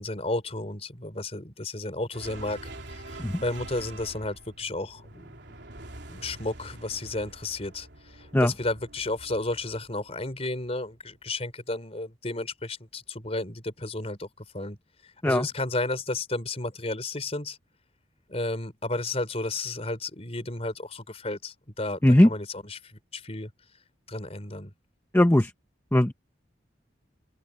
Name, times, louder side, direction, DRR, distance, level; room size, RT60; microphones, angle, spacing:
voice 1, 0.0-5.3 6.1-14.8 15.0-17.6 18.3-23.5 24.1-24.7, left 2 dB, 35° left, 4.4 m, -33 dB
sound 1, 2.1-10.7, right 2 dB, 75° right, 3.4 m, -45 dB
voice 2, 25.1-25.5 25.9-26.1, left 1 dB, 10° left, 0.8 m, -19 dB
open air
head